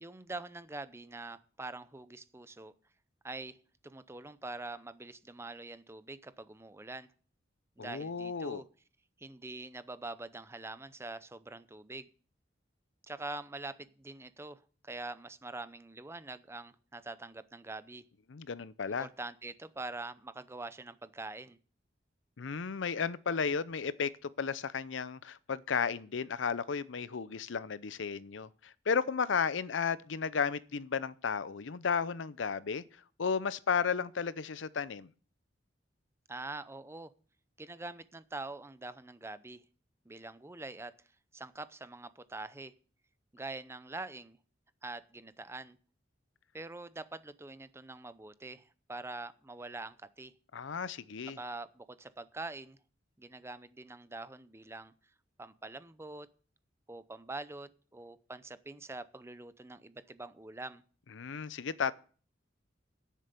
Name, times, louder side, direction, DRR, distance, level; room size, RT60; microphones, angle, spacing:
voice 1, 0.0-2.7 3.2-3.6 3.8-7.1 7.8-8.6 9.2-12.1 13.1-18.0 19.0-21.6 36.3-37.1 37.6-39.6 40.1-40.9 41.3-42.7 43.3-44.4 44.8-45.8 46.5-50.3 51.4-52.8 53.2-54.9 55.4-56.3 56.9-60.8, right 2 dB, 15° right, 0.6 m, -44 dB
voice 2, 7.8-8.6 18.3-19.1 22.4-32.8 33.2-35.1 50.5-51.4 61.2-61.9, left 6 dB, 85° left, 0.6 m, -34 dB
10.5 x 7.5 x 6.8 m
head